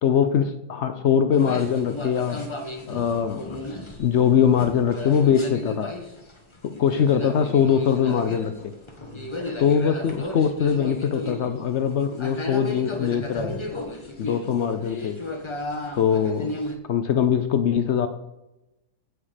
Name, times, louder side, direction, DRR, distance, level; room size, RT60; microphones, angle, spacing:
voice 1, 0.0-2.4 2.9-3.6 4.0-5.9 6.6-8.7 9.6-13.6 14.2-15.2 16.0-16.5 16.9-18.1, left 8 dB, 65° left, 9 dB, 0.7 m, -22 dB
sound 1, 1.3-16.8, left 1 dB, 20° left, 0.9 m, -34 dB
16.0 x 6.3 x 3.4 m, 0.95 s
omnidirectional pair, 1.7 m